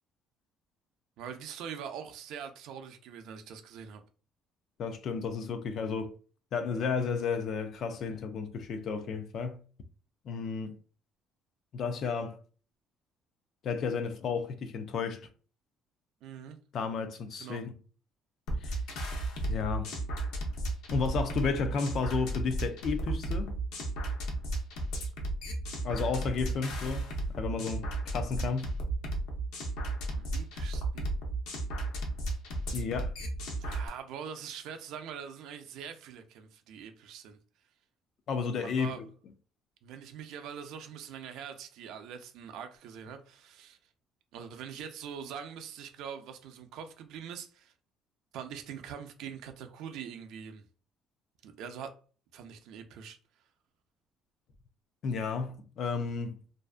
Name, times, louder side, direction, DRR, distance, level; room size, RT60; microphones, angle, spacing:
voice 1, 1.2-4.0 16.2-16.6 17.4-17.6 26.0-26.2 30.1-31.1 33.6-37.4 38.6-39.0 39.8-43.8 44.3-47.7 48.3-50.6 51.4-51.9 52.3-53.2, right 7 dB, 70° right, 0.4 m, -43 dB
voice 2, 4.8-6.1 6.5-9.6 10.3-10.8 11.7-12.4 13.6-15.3 16.7-17.7 18.6-18.8 19.5-19.9 20.9-23.6 25.8-27.1 27.4-27.9 28.1-28.8 32.7-33.1 38.3-39.1 55.0-56.4, left 5 dB, 45° left, 0.4 m, -32 dB
sound 1, 18.5-33.9, right 2 dB, 80° left, 0.7 m, -34 dB
2.5 x 2.3 x 2.4 m
cardioid pair, 160°, 0 cm